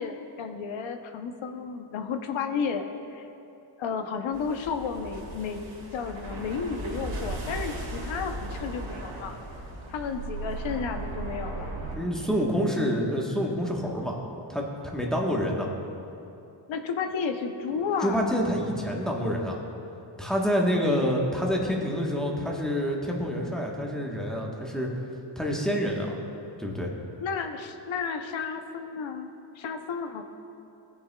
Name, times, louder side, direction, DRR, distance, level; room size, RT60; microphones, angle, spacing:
voice 1, 0.0-2.9 3.1-3.3 3.8-9.4 9.9-11.7 16.7-18.5 27.2-29.3 29.6-30.2, left 5 dB, 85° left, 7 dB, 0.7 m, -32 dB
sound 1, 4.3-12.0, right 2 dB, 75° right, 2.2 m, -37 dB
voice 2, 11.9-14.2 14.5-15.7 18.0-19.6 20.2-24.9 25.4-26.2 26.6-26.9, equal, ahead, -2 dB, 1.0 m, -27 dB
18.0 x 6.9 x 2.2 m, 2.8 s
wide cardioid pair, 150°, 46 cm